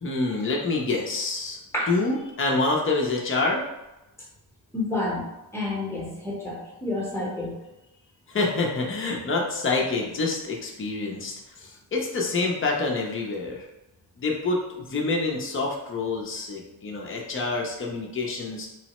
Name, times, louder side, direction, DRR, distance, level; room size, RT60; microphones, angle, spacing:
voice 1, 0.0-1.6 1.9-3.7 8.3-13.7 14.2-18.7, left 3 dB, 25° left, -1 dB, 0.5 m, -27 dB
voice 2, 4.7-5.3 5.5-7.6, left 2 dB, 5° left, -4 dB, 0.9 m, -29 dB
3.1 x 2.0 x 2.9 m, 0.95 s
wide cardioid pair, 110°, 47 cm